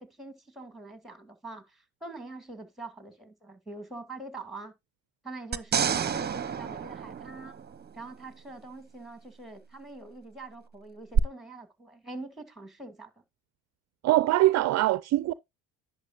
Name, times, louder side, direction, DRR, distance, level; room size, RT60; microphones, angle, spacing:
voice 1, 0.0-4.7 5.2-7.6 7.9-13.1, right 2 dB, ahead, 2.2 m, -44 dB
sound 1, 5.5-8.0 11.1-11.2, right 8 dB, 30° right, 0.8 m, -29 dB
voice 2, 14.0-15.3, right 16 dB, 55° right, 0.5 m, -23 dB
10.5 x 7.1 x 2.5 m
supercardioid pair, 70°, 33 cm